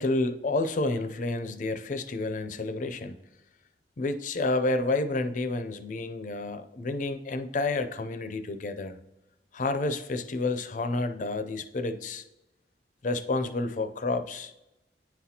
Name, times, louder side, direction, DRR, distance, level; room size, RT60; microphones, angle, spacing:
voice 1, 0.0-3.2 4.0-9.0 9.5-12.2 13.0-14.5, left 2 dB, 45° left, 9 dB, 0.4 m, -30 dB
9.6 x 4.0 x 2.8 m, 0.94 s
head